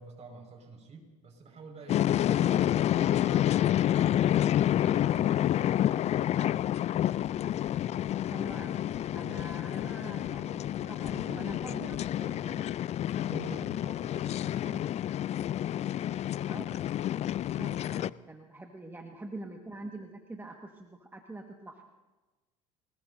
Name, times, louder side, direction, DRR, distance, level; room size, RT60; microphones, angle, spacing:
voice 1, 0.0-2.1 2.4-5.5 9.1-10.0 10.5-11.8 12.4-12.7 13.0-14.9 17.6-18.1, right 4 dB, 40° right, 2 dB, 5.2 m, -49 dB
sound 1, 1.9-18.1, left 11 dB, 40° left, 0.4 m, -29 dB
sound 2, 7.2-7.3 7.7-7.8 8.1-8.2 8.5-8.6 8.9-9.0 9.4-9.5 9.8-9.9 10.2-10.3 10.6-10.7 11.1-11.2 11.5-11.6 11.9-12.0, left 13 dB, 60° left, 1.1 m, -48 dB
voice 2, 8.1-8.8 9.1-12.5 16.5-16.7 17.5-21.8, right 2 dB, 10° right, 2 dB, 1.6 m, -45 dB
23.5 x 20.0 x 2.7 m, 1.2 s
hypercardioid pair, 80°, 17 cm